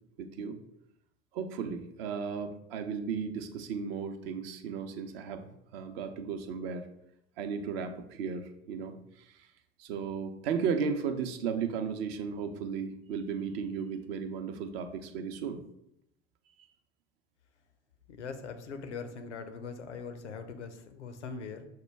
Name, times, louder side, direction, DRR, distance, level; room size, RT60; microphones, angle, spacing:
voice 1, 0.2-0.6 1.3-5.4 5.7-6.9 7.4-9.4 9.8-15.6, right 6 dB, 55° right, 8 dB, 0.6 m, -35 dB
voice 2, 18.1-21.7, left 5 dB, 80° left, 7 dB, 0.6 m, -41 dB
6.5 x 2.2 x 3.3 m, 0.77 s
figure-of-eight pair, 75°, 35 cm